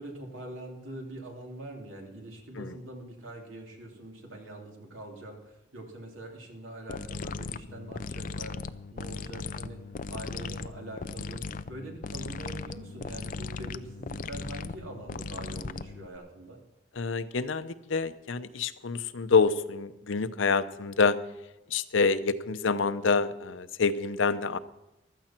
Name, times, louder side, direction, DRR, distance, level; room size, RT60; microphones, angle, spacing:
voice 1, 0.0-9.8 10.1-11.4 11.7-16.6 22.9-23.0, right 1 dB, 90° right, 0 dB, 3.1 m, -43 dB
sound 1, 6.9-16.2, left 4 dB, 45° left, 0.4 m, -38 dB
voice 2, 17.0-21.2 21.7-24.6, left 4 dB, 80° left, 12 dB, 0.7 m, -27 dB
15.0 x 13.0 x 4.4 m, 0.95 s
head